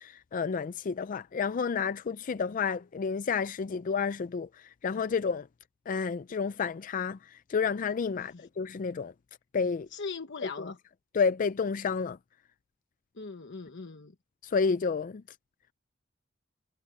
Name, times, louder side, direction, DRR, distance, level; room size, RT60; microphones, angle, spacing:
voice 1, 0.0-4.5 4.8-5.4 5.9-7.2 7.5-9.1 9.5-9.9 10.4-10.5 11.1-12.2 14.5-15.2, left 5 dB, 45° left, 0.4 m, -30 dB
voice 2, 9.9-10.8 13.2-14.1, left 4 dB, 65° left, 1.1 m, -40 dB
head